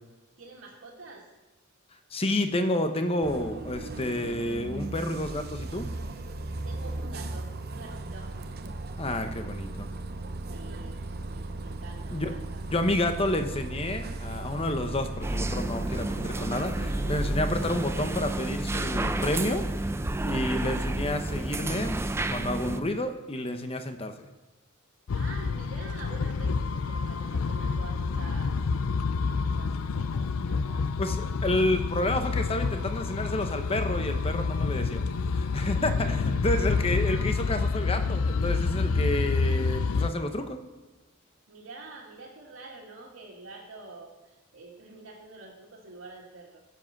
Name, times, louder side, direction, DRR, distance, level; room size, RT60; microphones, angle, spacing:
voice 1, 0.4-1.2 6.6-8.3 9.3-9.4 10.5-12.6 25.1-28.6 28.9-30.9 36.0-36.5 41.5-46.6, right 3 dB, 75° right, -7 dB, 2.2 m, -47 dB
voice 2, 2.1-5.9 9.0-9.9 12.1-12.3 12.7-19.6 20.2-22.0 22.3-24.2 31.0-40.6, left 1 dB, 25° left, 7 dB, 1.0 m, -30 dB
Bus, 3.2-17.3, right 2 dB, 50° right, 0.7 m, -37 dB
sound 1, 15.2-22.8, right 1 dB, 10° right, 0.5 m, -30 dB
sound 2, 25.1-40.1, left 4 dB, 85° left, 0.5 m, -28 dB
15.0 x 7.6 x 6.0 m, 1.1 s
head